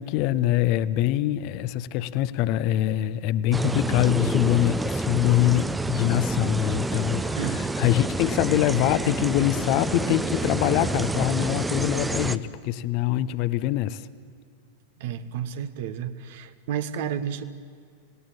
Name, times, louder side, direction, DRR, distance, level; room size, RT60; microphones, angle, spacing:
voice 1, 0.0-14.0, left 14 dB, 45° left, 15 dB, 0.8 m, -24 dB
sound 1, 3.5-12.4, right 2 dB, 10° right, 0.7 m, -28 dB
voice 2, 7.4-7.7 15.0-17.4, right 8 dB, 50° right, 12 dB, 1.2 m, -31 dB
26.0 x 18.5 x 8.8 m, 2.1 s
figure-of-eight pair, 90°, 0 cm